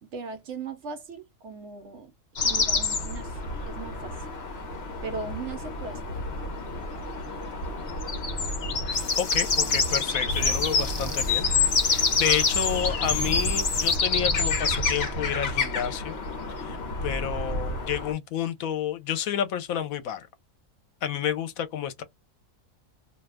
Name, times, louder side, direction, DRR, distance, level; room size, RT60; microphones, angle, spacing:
voice 1, 0.0-2.1 2.4-4.2 5.0-6.0, right 5 dB, 65° right, 0.8 m, -38 dB
sound 1, 2.4-18.1, left 3 dB, 50° left, 1.0 m, -27 dB
sound 2, 8.8-14.0, left 2 dB, 20° left, 0.9 m, -45 dB
voice 2, 9.2-11.5 11.8-16.2 16.6-16.8 17.0-20.3 21.0-22.0, left 9 dB, 75° left, 1.1 m, -30 dB
2.6 x 2.3 x 3.3 m
omnidirectional pair, 1.5 m